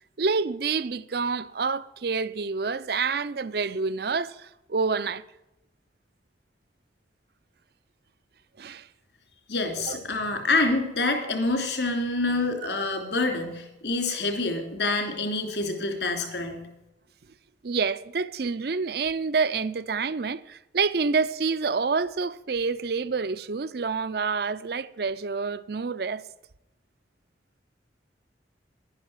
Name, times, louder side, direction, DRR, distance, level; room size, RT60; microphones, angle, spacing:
voice 1, 0.2-5.2 8.6-8.9 9.8-10.0 17.6-26.2, right 4 dB, 60° right, 0.5 m, -28 dB
voice 2, 9.5-16.6, left 3 dB, 70° left, 3.1 m, -27 dB
11.0 x 10.5 x 7.4 m
head